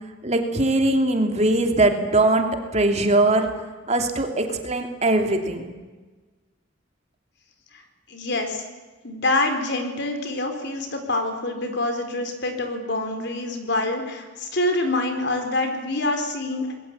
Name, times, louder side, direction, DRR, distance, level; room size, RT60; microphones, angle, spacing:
voice 1, 0.2-3.5 3.9-5.7, right 2 dB, 35° right, 4 dB, 2.9 m, -21 dB
voice 2, 8.1-8.6 9.0-16.7, left 2 dB, 60° left, 6 dB, 4.5 m, -26 dB
27.0 x 21.0 x 8.7 m, 1.3 s
head